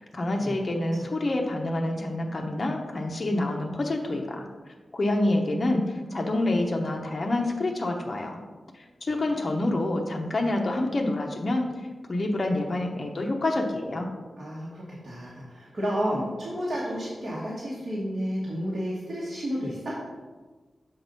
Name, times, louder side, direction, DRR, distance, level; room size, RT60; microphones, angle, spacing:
voice 1, 0.1-4.5 4.9-8.4 8.7-11.7 12.1-14.1, left 2 dB, 40° left, 1 dB, 0.8 m, -27 dB
voice 2, 14.4-20.0, equal, 50° right, -7 dB, 1.5 m, -31 dB
7.1 x 3.9 x 5.3 m, 1.3 s
wide cardioid pair, 110°, 0 cm